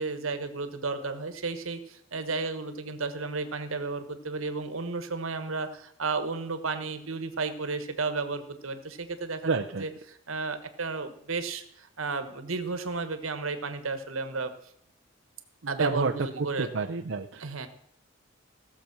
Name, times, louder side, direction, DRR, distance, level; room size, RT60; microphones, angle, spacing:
voice 1, 0.0-9.5 9.8-14.5 15.7-16.7 17.4-17.7, right 4 dB, 85° right, 9 dB, 1.4 m, -33 dB
voice 2, 9.4-9.9 15.6-16.1 16.4-17.7, right 4 dB, 60° right, 3 dB, 0.6 m, -30 dB
16.5 x 6.8 x 6.0 m, 0.67 s
head